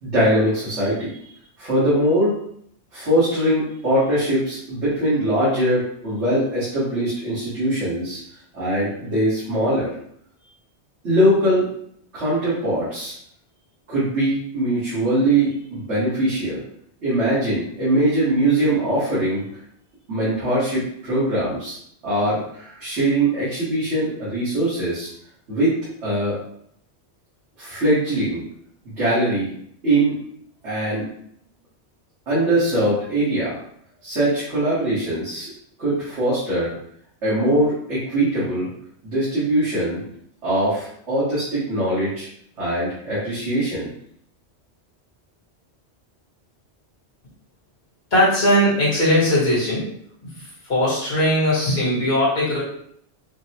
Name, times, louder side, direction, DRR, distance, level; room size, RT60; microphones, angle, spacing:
voice 1, 0.0-1.2 1.6-2.4 2.9-8.2 8.5-9.9 11.0-11.7 12.1-13.1 13.9-16.6 17.0-19.4 20.1-21.8 22.0-25.1 25.5-25.8 26.0-26.4 27.6-28.5 29.0-29.5 29.8-30.2 30.6-31.1 32.3-33.6 34.0-35.5 35.8-36.7 37.2-38.7 39.0-40.0 40.4-42.3 42.6-43.9, right 1 dB, 80° right, -12 dB, 1.9 m, -21 dB
voice 2, 48.1-49.9 50.2-52.6, left 1 dB, 65° left, -7 dB, 1.8 m, -19 dB
5.8 x 2.2 x 2.9 m, 0.67 s
omnidirectional pair, 1.1 m